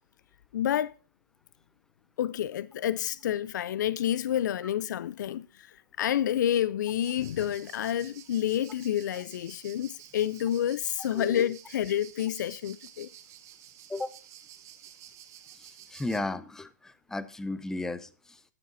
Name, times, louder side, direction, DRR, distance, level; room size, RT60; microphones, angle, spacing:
voice 1, 0.5-0.9 2.2-13.1, left 10 dB, 75° left, 0.4 m, -29 dB
sound 1, 7.0-16.2, right 11 dB, 30° right, 1.1 m, -51 dB
voice 2, 11.1-11.5 13.9-14.1 15.6-18.4, left 2 dB, 5° left, 0.6 m, -35 dB
9.9 x 9.4 x 4.0 m
hypercardioid pair, 135°, 10 cm